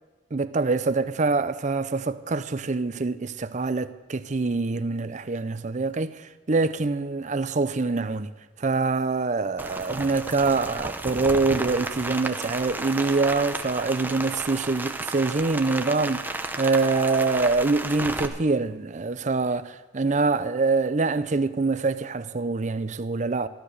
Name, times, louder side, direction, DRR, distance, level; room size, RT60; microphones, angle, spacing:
voice 1, 0.3-8.3 8.6-23.5, right 3 dB, 40° right, 0.6 m, -25 dB
Rain, 9.6-18.3, right 2 dB, 10° right, 0.8 m, -33 dB
13.5 x 12.5 x 6.5 m
head